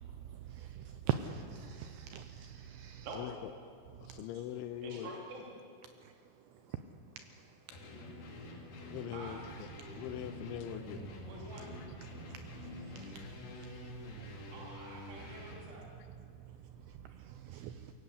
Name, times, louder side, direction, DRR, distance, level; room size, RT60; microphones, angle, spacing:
voice 1, 0.0-3.1 4.1-4.2 6.0-6.1 12.1-14.5 16.4-17.9, right 10 dB, 90° right, 2.4 m, -43 dB
voice 2, 3.1-3.5 4.0-5.2 8.8-11.0 11.8-11.9, left 11 dB, 80° left, 3.0 m, -43 dB
voice 3, 4.8-5.5 9.1-9.4 11.3-11.7 14.5-15.9, right 2 dB, 60° right, 4.9 m, -47 dB
sound 1, 7.7-15.7, left 1 dB, 55° left, 4.1 m, -47 dB
22.5 x 17.5 x 8.4 m
omnidirectional pair, 5.8 m